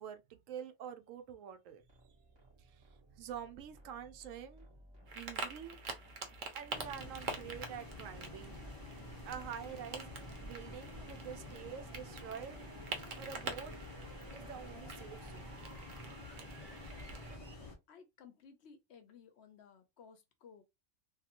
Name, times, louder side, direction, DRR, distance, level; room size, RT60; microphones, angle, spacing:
voice 1, 0.0-1.8 2.6-2.9 3.2-4.7 5.1-5.8 6.5-8.6 9.2-12.7 13.2-13.7 14.3-15.5, right 8 dB, 90° right, 1.0 m, -47 dB
sound 1, 1.8-17.7, right 1 dB, 20° right, 1.1 m, -59 dB
sound 2, 5.1-17.4, right 3 dB, 50° right, 0.7 m, -47 dB
sound 3, 6.7-17.8, left 1 dB, 25° left, 0.5 m, -49 dB
voice 2, 17.9-20.6, left 6 dB, 65° left, 0.8 m, -58 dB
2.8 x 2.6 x 2.5 m
omnidirectional pair, 1.3 m